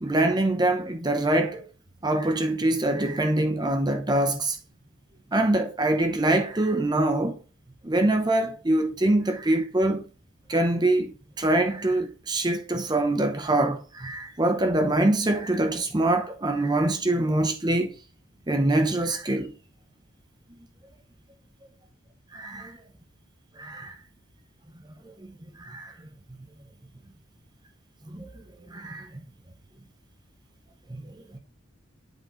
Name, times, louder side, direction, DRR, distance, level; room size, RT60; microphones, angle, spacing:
voice 1, 0.0-1.6 2.0-4.6 5.3-7.4 7.8-10.0 10.5-17.9 18.5-19.5 22.3-22.8 23.6-23.9 25.6-25.9 28.1-28.3 28.7-29.1 30.9-31.0, right 1 dB, 20° right, 0.6 m, -24 dB
8.0 x 4.5 x 3.7 m
head